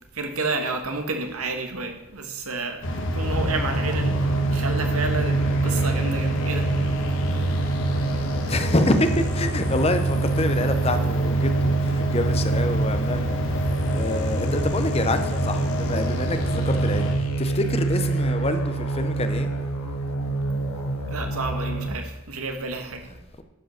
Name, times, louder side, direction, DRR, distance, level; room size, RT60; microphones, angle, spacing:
voice 1, 0.1-2.9 3.1-6.7 21.1-23.1, right 3 dB, 80° right, 5 dB, 1.4 m, -30 dB
sound 1, 2.8-17.2, equal, 55° left, 1.3 m, -27 dB
sound 2, 3.3-21.9, right 3 dB, 85° left, 1.3 m, -26 dB
voice 2, 8.5-19.5 23.1-23.4, left 1 dB, 25° left, 9 dB, 0.7 m, -27 dB
11.0 x 5.3 x 6.5 m, 1.0 s
head